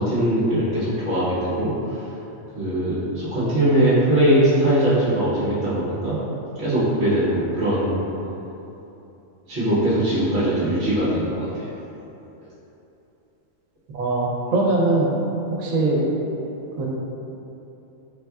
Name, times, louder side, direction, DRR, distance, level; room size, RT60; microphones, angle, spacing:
voice 1, 0.0-1.7 2.5-6.2 6.6-8.0 9.5-11.6, right 1 dB, 50° right, -11 dB, 1.1 m, -21 dB
voice 2, 13.9-15.1 15.5-16.0 16.8-16.9, right 2 dB, 85° right, -3 dB, 1.1 m, -21 dB
4.2 x 3.6 x 2.3 m, 2.9 s
omnidirectional pair, 1.4 m